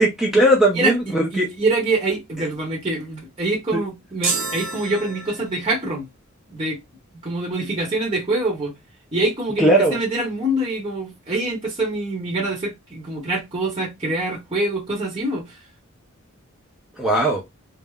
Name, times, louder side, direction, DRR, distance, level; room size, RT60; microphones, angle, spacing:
voice 1, 0.0-1.5 9.6-10.0 17.0-17.4, right 1 dB, ahead, 0.5 m, -18 dB
voice 2, 0.7-6.1 6.5-6.8 7.1-8.7 9.1-15.6, right 2 dB, 25° right, 0.9 m, -25 dB
sound 1, 4.2-5.8, right 4 dB, 65° right, 0.8 m, -28 dB
3.4 x 2.0 x 2.2 m
head